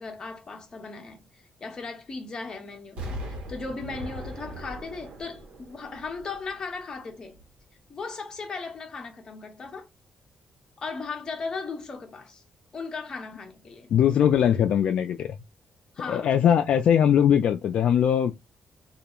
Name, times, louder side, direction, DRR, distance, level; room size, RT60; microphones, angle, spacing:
voice 1, 0.0-7.4 7.9-9.9 10.8-12.4 12.7-13.9 15.9-16.3, left 4 dB, 35° left, 0.7 m, -37 dB
Explosion, 3.0-6.9 7.3-7.4, right 1 dB, 75° right, 1.0 m, -39 dB
voice 2, 13.9-15.3 16.1-18.3, left 9 dB, 70° left, 0.3 m, -21 dB
2.3 x 2.0 x 2.9 m
cardioid pair, 140°, 2 cm